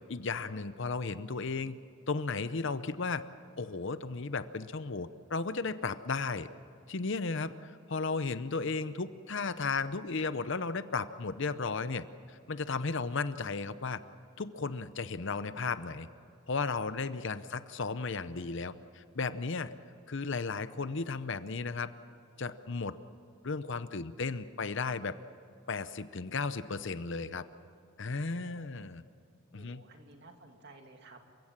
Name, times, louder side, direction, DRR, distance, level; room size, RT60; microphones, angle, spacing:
voice 1, 0.1-1.8 2.1-3.2 3.6-6.5 6.9-14.0 14.4-16.1 16.5-19.7 20.1-21.9 22.4-23.0 23.4-25.2 25.7-27.4 28.0-29.0 29.5-29.8, left 4 dB, 60° left, 13 dB, 0.7 m, -34 dB
voice 2, 28.1-28.7 29.6-31.3, right 2 dB, 50° right, 3 dB, 2.5 m, -55 dB
28.0 x 16.0 x 7.4 m, 2.5 s
head